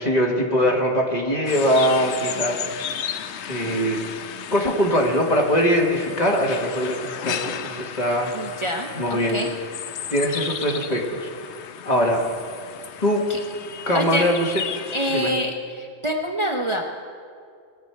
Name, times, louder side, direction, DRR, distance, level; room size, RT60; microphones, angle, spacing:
voice 1, 0.0-2.8 3.5-4.0 4.5-8.3 8.9-9.4 10.1-11.3 11.8-12.2 13.0-13.2 13.9-14.5 15.1-15.3, equal, 40° left, -1 dB, 1.7 m, -22 dB
sound 1, 1.5-15.2, left 8 dB, 80° left, 0.9 m, -34 dB
voice 2, 8.3-9.5 13.3-13.4 13.9-14.3 14.9-16.8, equal, 30° right, 1 dB, 0.7 m, -26 dB
21.0 x 7.9 x 4.5 m, 2.2 s
omnidirectional pair, 1.1 m